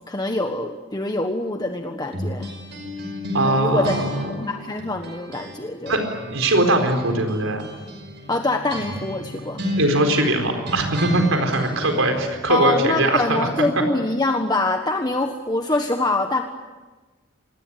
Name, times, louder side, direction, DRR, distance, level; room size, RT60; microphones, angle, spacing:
voice 1, 0.1-2.6 3.4-3.9 4.3-6.0 8.3-9.6 12.5-16.4, left 2 dB, 20° left, 4 dB, 1.4 m, -24 dB
sound 1, 2.1-5.6 5.9-12.3, left 1 dB, 55° right, 5.4 m, -32 dB
voice 2, 3.3-4.3 5.9-6.0 6.3-7.6 9.8-13.5, right 2 dB, 90° right, 5 dB, 4.3 m, -21 dB
27.0 x 20.5 x 9.8 m, 1.3 s
head